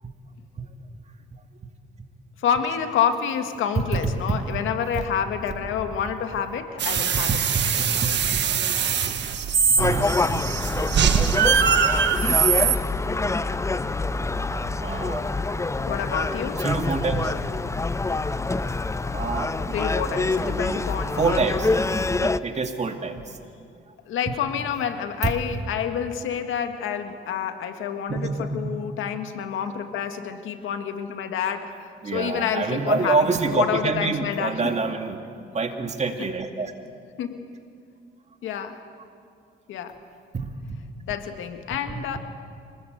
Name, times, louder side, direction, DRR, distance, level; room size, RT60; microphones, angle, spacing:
voice 1, 2.4-7.3 15.9-16.6 19.7-21.4 22.2-22.3 24.1-34.7 37.2-37.5 38.4-38.8 39.7-40.0 41.1-42.2, left 8 dB, 85° left, 7 dB, 1.8 m, -28 dB
voice 2, 3.8-4.4 4.9-5.0 7.1-7.4 8.0-8.4 9.9-10.0 10.3-10.4 14.8-15.4 16.6-17.3 19.0-19.5 19.9-20.8 21.2-21.9 22.2-23.4 25.2-25.3 28.1-28.6 32.0-35.2 35.5-36.7 40.3-40.5 41.9-42.0, right 4 dB, 35° right, 5 dB, 2.3 m, -26 dB
sound 1, 6.8-12.7, right 7 dB, 60° right, 1.7 m, -22 dB
Gull seagull, 9.8-22.4, left 3 dB, 15° left, 0.6 m, -26 dB
26.0 x 19.5 x 7.9 m, 2.4 s
cardioid pair, 90°, 20 cm